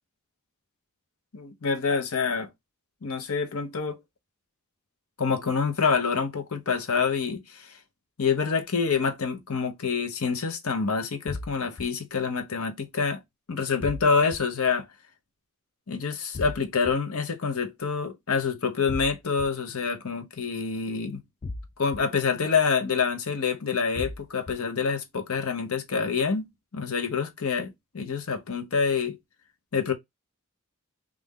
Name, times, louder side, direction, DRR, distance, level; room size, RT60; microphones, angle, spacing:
voice 1, 1.3-2.5 3.0-4.0 5.2-7.8 8.2-13.2 13.5-14.9 15.9-21.2 21.8-29.2 29.7-29.9, left 5 dB, 70° left, 0.8 m, -27 dB
sound 1, 11.3-11.8 13.8-14.4 16.3-16.9 18.9-19.5 21.4-22.0 23.9-24.5, left 2 dB, 30° left, 0.3 m, -35 dB
3.3 x 2.5 x 3.6 m
head